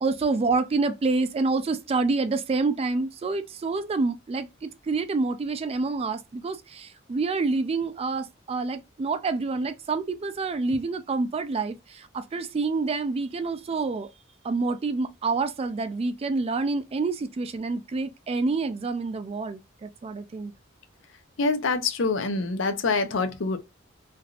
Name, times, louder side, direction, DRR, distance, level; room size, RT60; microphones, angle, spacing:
voice 1, 0.0-14.1 14.4-20.5, right 3 dB, 30° right, 0.3 m, -27 dB
voice 2, 21.4-23.6, left 3 dB, 70° left, 0.5 m, -25 dB
3.3 x 2.5 x 2.3 m
head